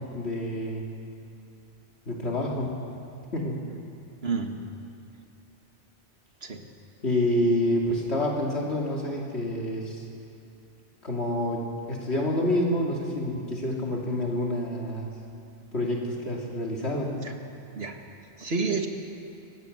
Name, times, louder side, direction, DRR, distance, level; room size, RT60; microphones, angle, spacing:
voice 1, 0.1-0.8 2.1-2.7 3.3-3.6 7.0-10.0 11.0-15.1 15.7-17.3, left 1 dB, 75° left, -2 dB, 3.0 m, -28 dB
voice 2, 4.2-4.6 6.4-6.6 17.2-17.3 17.7-18.0 18.4-18.9, right 4 dB, 65° right, 4 dB, 2.1 m, -29 dB
26.0 x 19.0 x 8.0 m, 2.6 s
omnidirectional pair, 1.1 m